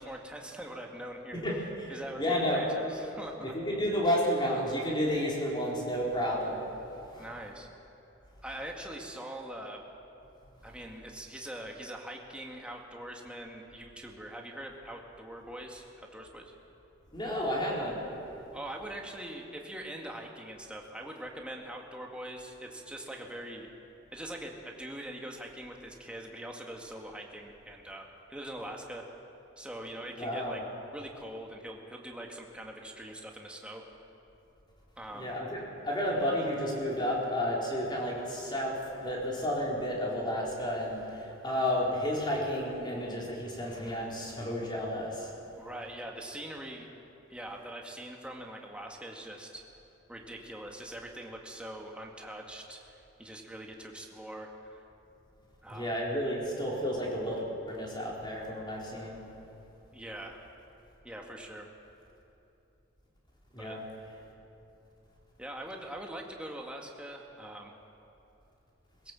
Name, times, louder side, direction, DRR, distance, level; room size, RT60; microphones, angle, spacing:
voice 1, 0.0-1.4 1.9-3.5 7.2-7.7 8.4-9.8 10.6-16.5 18.5-23.7 24.1-29.1 29.6-30.6 30.9-33.8 35.0-35.4 45.6-46.9 47.3-49.6 50.1-54.8 55.6-55.9 59.9-60.4 61.0-61.7 63.6-63.8 65.4-67.7, right 1 dB, 5° right, 0 dB, 1.8 m, -43 dB
voice 2, 1.3-1.9 2.2-2.6 3.4-6.6 7.1-7.3 17.1-18.0 30.2-30.6 35.1-35.6 35.8-45.3 55.7-59.2 63.5-63.8, equal, 25° left, -3 dB, 4.1 m, -31 dB
21.5 x 16.5 x 7.5 m, 2.9 s
head